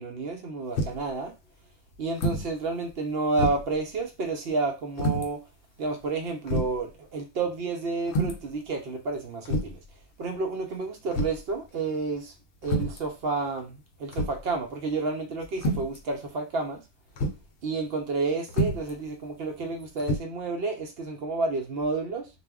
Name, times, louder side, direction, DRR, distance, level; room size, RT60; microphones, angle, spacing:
voice 1, 0.0-1.3 2.0-5.4 5.8-9.8 10.2-12.3 12.6-16.8 17.6-22.3, right 3 dB, 60° right, 3 dB, 0.7 m, -30 dB
sound 1, 0.8-1.1 2.1-2.5 2.9-3.0 3.4-3.8 5.0-5.3 6.0-6.1 6.5-6.8 8.1-8.5 9.4-9.8 11.1-11.5 12.6-13.0 14.1-14.5 15.5-16.0 17.2-17.4 18.5-18.9 20.0-20.2, equal, 70° left, 0.8 m, -28 dB
2.3 x 2.0 x 3.4 m, 0.26 s
omnidirectional pair, 1.3 m